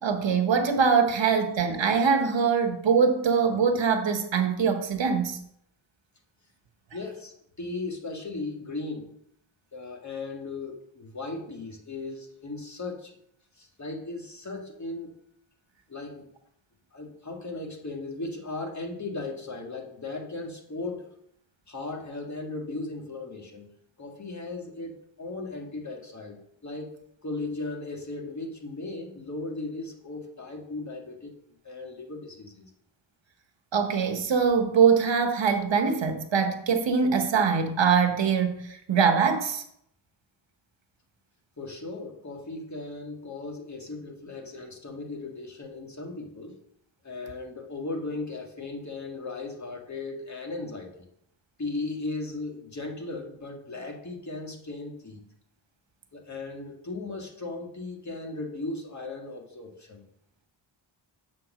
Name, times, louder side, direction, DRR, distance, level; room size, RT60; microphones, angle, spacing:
voice 1, 0.0-5.4 33.7-39.6, right 6 dB, 65° right, 6 dB, 1.1 m, -23 dB
voice 2, 6.9-9.1 9.7-13.2 13.6-15.1 15.9-16.3 16.9-21.1 21.7-23.7 24.0-26.9 27.2-31.4 31.6-32.7 41.6-46.6 47.0-51.0 51.6-55.2 56.1-60.0, left 3 dB, 35° left, 1 dB, 1.8 m, -37 dB
7.2 x 4.4 x 6.0 m, 0.71 s
wide cardioid pair, 90°, 49 cm